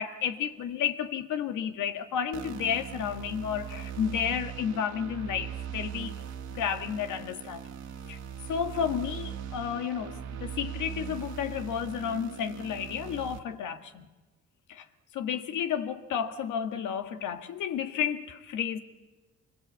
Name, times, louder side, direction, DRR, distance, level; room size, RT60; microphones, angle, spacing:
voice 1, 0.0-6.1 6.5-7.7 8.0-8.2 8.5-14.1 14.7-14.8 15.1-18.8, left 8 dB, 80° left, 1.8 m, -32 dB
sound 1, 2.3-13.4, right 8 dB, 70° right, 2.4 m, -40 dB
25.5 x 24.5 x 8.4 m
cardioid pair, 90°, 30 cm